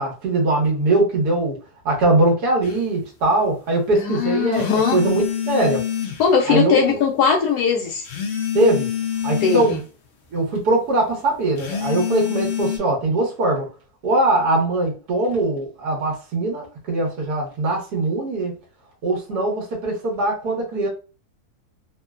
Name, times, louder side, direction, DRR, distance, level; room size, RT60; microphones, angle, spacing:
voice 1, 0.0-1.6 1.8-5.8 6.5-7.0 8.5-8.9 9.2-9.8 10.3-13.7 14.0-18.5 19.0-20.9, right 2 dB, 85° right, 1.6 m, -21 dB
sound 1, 2.6-2.8 4.5-6.3 8.0-9.8 11.6-12.8, left 9 dB, 55° left, 0.8 m, -26 dB
voice 2, 3.9-5.0 6.2-8.1 9.4-9.8, left 6 dB, 80° left, 1.1 m, -20 dB
3.6 x 2.1 x 2.4 m
omnidirectional pair, 1.7 m